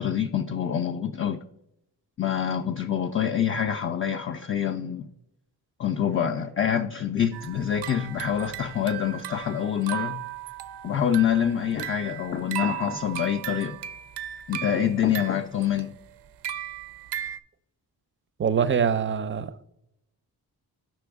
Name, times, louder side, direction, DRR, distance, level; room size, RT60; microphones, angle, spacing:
voice 1, 0.0-1.4 2.2-5.1 5.8-10.2 10.8-13.8 14.5-15.9, left 9 dB, 35° left, 0.4 m, -26 dB
sound 1, 7.3-17.4, right 12 dB, 85° right, 0.5 m, -36 dB
voice 2, 18.4-19.6, right 7 dB, 30° right, 0.4 m, -24 dB
7.7 x 6.0 x 3.5 m
wide cardioid pair, 120°, 40 cm